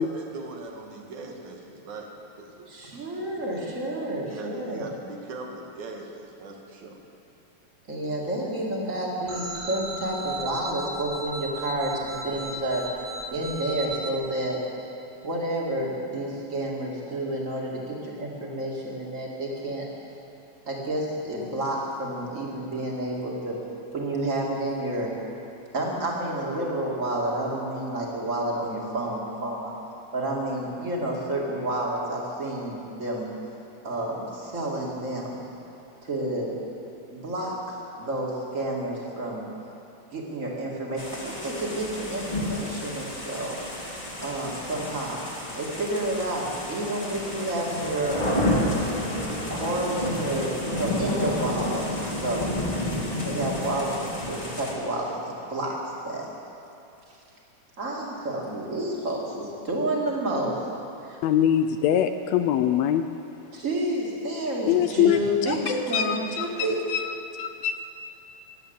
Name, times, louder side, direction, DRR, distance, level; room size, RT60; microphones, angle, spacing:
voice 1, 0.0-2.7 3.2-3.6 4.2-7.0, right 3 dB, 85° right, 1 dB, 3.1 m, -40 dB
voice 2, 2.7-4.9 7.9-12.9 13.3-14.6 15.2-19.9 20.7-23.6 23.9-25.1 25.7-29.7 30.1-33.3 33.8-35.4 36.0-36.6 37.1-39.4 40.1-43.6 44.2-45.2 45.5-48.5 49.5-51.8 52.2-52.5 53.2-54.0 54.3-55.8 56.0-56.3 57.1-57.2 57.8-60.6 61.0-61.2 63.5-66.8, right 1 dB, 30° right, -3 dB, 2.4 m, -30 dB
sound 1, 9.3-14.1, right 1 dB, 50° right, 0.8 m, -36 dB
sound 2, 41.0-54.7, left 1 dB, 15° left, 1.8 m, -30 dB
voice 3, 61.2-63.1 64.7-65.6 65.9-66.5 66.9-67.7, left 10 dB, 80° left, 9 dB, 1.6 m, -23 dB
15.5 x 11.0 x 8.0 m, 2.7 s
omnidirectional pair, 3.3 m